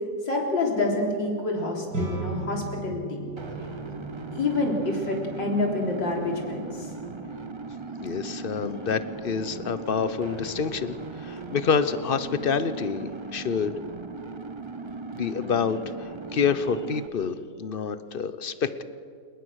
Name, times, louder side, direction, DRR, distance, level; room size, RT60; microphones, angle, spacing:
voice 1, 0.2-3.2 4.3-6.9, left 2 dB, 85° left, 0 dB, 4.4 m, -27 dB
sound 1, 1.9-11.4, right 3 dB, 75° right, 6.7 m, -40 dB
sound 2, 3.4-17.1, right 3 dB, 25° right, 0.6 m, -38 dB
voice 2, 8.0-10.9 11.2-13.7 15.1-18.8, left 6 dB, 45° left, 13 dB, 0.7 m, -27 dB
29.0 x 19.0 x 6.5 m, 2.3 s
omnidirectional pair, 1.9 m